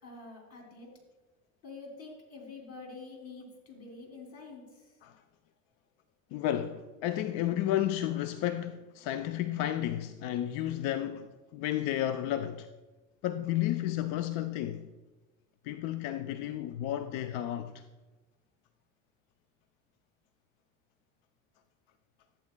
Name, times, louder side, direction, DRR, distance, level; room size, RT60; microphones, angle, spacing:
voice 1, 0.0-0.9 1.6-5.0, left 3 dB, 40° left, 2.9 m, -47 dB
voice 2, 6.3-12.7 13.2-14.9 15.6-17.8, left 12 dB, 60° left, 0.5 m, -32 dB
13.5 x 8.5 x 2.2 m
hypercardioid pair, 60°, 39 cm